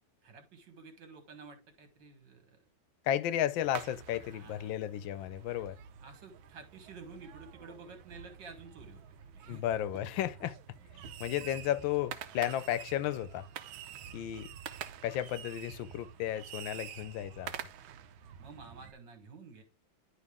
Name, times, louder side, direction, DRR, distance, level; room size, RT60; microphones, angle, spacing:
voice 1, 0.2-2.6 4.2-4.7 6.0-9.6 18.4-19.6, right 4 dB, 65° right, 2.2 m, -51 dB
voice 2, 3.0-5.8 9.5-10.6 11.2-13.5 14.1-14.5 15.0-17.5, left 12 dB, 80° left, 1.3 m, -33 dB
sound 1, 3.6-18.9, right 9 dB, 90° right, 1.5 m, -47 dB
11.0 x 3.6 x 3.6 m
omnidirectional pair, 2.1 m